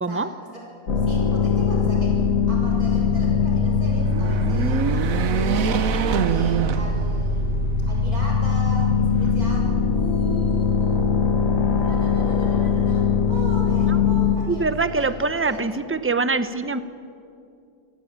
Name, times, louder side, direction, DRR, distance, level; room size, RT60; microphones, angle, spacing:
voice 1, 0.1-0.6 1.0-5.9 6.2-11.1 11.7-15.6, equal, 90° right, -2 dB, 7.1 m, -38 dB
sound 1, 0.9-14.4, left 5 dB, 65° left, 2.1 m, -21 dB
sound 2, 3.9-7.5 8.0-8.1 9.2-9.9, right 7 dB, 70° right, 1.4 m, -25 dB
voice 2, 14.5-16.8, right 3 dB, 15° right, 11 dB, 0.6 m, -24 dB
27.0 x 18.0 x 8.7 m, 2.5 s
omnidirectional pair, 1.5 m